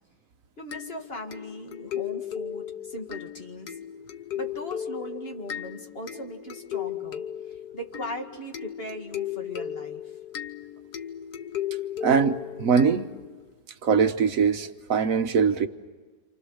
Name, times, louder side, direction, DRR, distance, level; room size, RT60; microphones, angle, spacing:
voice 1, 0.6-3.8 4.3-10.2, left 1 dB, 35° left, 2 dB, 2.3 m, -39 dB
sound 1, 0.7-13.5, left 10 dB, 75° left, 1.7 m, -36 dB
voice 2, 12.0-13.1 13.8-15.7, right 6 dB, 55° right, 9 dB, 1.4 m, -22 dB
28.0 x 28.0 x 6.5 m, 1.4 s
omnidirectional pair, 1.8 m